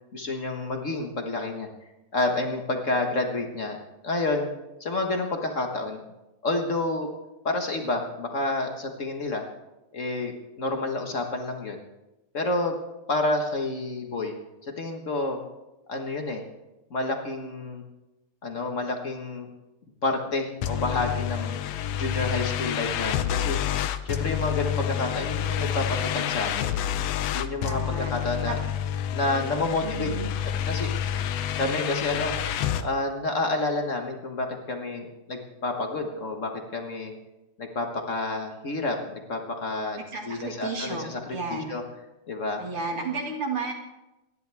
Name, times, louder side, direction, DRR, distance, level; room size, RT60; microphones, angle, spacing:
voice 1, 0.1-1.7 2.1-3.8 4.0-4.5 4.8-6.0 6.4-7.1 7.4-9.4 9.9-11.8 12.3-12.8 13.1-14.3 14.6-15.4 15.9-16.4 16.9-17.8 18.4-19.5 20.0-21.6 21.9-23.6 24.0-26.8 27.3-28.6 29.1-30.1 30.6-30.9 31.6-32.3 32.8-37.1 37.6-40.0 40.2-41.8 42.3-42.6, left 2 dB, 45° left, 3 dB, 1.0 m, -29 dB
sound 1, 20.6-32.8, left 10 dB, 70° left, 1.6 m, -28 dB
voice 2, 27.7-28.1 28.4-28.5 29.8-30.3 40.0-41.7 42.6-43.7, right 4 dB, 50° right, 1 dB, 2.7 m, -33 dB
28.5 x 11.0 x 3.5 m, 0.98 s
omnidirectional pair, 3.4 m